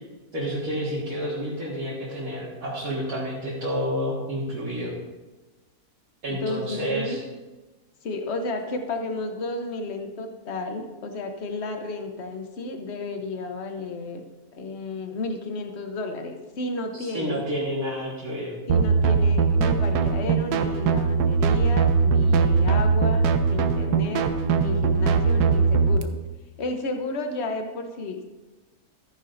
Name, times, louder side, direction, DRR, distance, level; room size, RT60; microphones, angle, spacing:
voice 1, 0.3-4.9 6.2-7.2 17.0-18.6, equal, 65° right, -8 dB, 2.3 m, -29 dB
voice 2, 6.3-7.2 8.0-14.2 14.5-17.4 18.7-23.2 23.5-24.2 24.5-26.1 26.6-28.3, left 3 dB, 50° left, 5 dB, 1.2 m, -32 dB
sound 1, 18.7-26.0, right 5 dB, 85° right, 1.3 m, -21 dB
14.0 x 10.0 x 2.6 m, 1.2 s
omnidirectional pair, 1.6 m